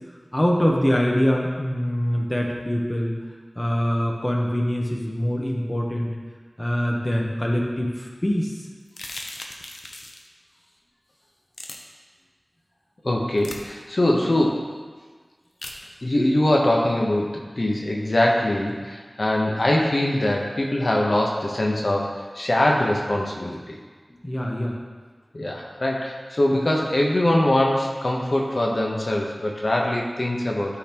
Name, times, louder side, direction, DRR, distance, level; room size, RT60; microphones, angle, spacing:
voice 1, 0.3-3.1 3.6-6.1 6.6-8.5 24.2-24.8, equal, 25° left, -1 dB, 0.9 m, -24 dB
sound 1, 8.9-10.3 11.5-11.8 13.4-13.6 15.6-15.8, left 2 dB, 80° left, 0.7 m, -37 dB
voice 2, 13.0-14.6 16.0-23.8 25.3-30.8, left 1 dB, 55° left, -1 dB, 0.9 m, -22 dB
12.0 x 4.0 x 2.9 m, 1.5 s
wide cardioid pair, 60°, 0 cm